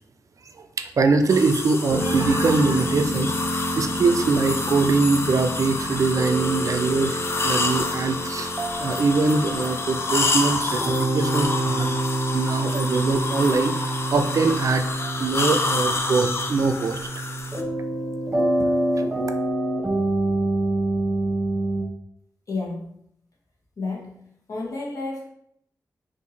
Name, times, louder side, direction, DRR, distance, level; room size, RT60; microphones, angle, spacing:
voice 1, 0.5-8.5 8.8-12.0 12.3-17.2, right 4 dB, 55° right, 8 dB, 0.3 m, -23 dB
sound 1, 1.3-17.6, left 3 dB, 40° left, 0.4 m, -28 dB
sound 2, 1.9-21.8, right 1 dB, 15° right, 0.9 m, -27 dB
voice 2, 22.5-22.9 23.8-24.1 24.5-25.3, left 3 dB, 60° left, -3 dB, 1.2 m, -30 dB
2.7 x 2.6 x 4.2 m, 0.70 s
wide cardioid pair, 80°, 6 cm